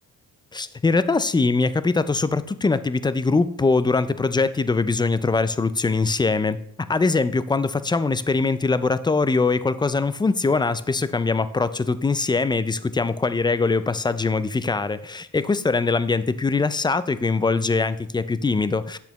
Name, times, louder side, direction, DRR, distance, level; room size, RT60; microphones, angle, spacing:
voice 1, 0.5-6.6 6.9-19.0, left 3 dB, 10° left, 14 dB, 0.4 m, -22 dB
8.3 x 6.8 x 3.0 m, 0.68 s
supercardioid pair, 60°, 42 cm